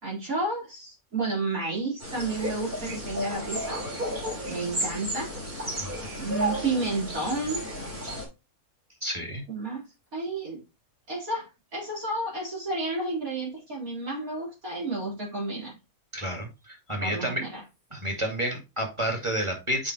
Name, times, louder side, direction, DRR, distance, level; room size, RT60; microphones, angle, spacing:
voice 1, 0.0-3.8 4.5-5.3 6.2-7.6 9.5-9.9 10.1-10.6 11.1-15.8 17.0-17.6, right 2 dB, 70° right, -4 dB, 4.6 m, -31 dB
sound 1, 2.0-8.3, equal, 40° right, 3.3 m, -33 dB
voice 2, 9.0-9.4 16.1-17.5 17.9-19.9, equal, 20° right, 2 dB, 2.3 m, -30 dB
7.5 x 5.2 x 3.1 m, 0.25 s
omnidirectional pair, 1.5 m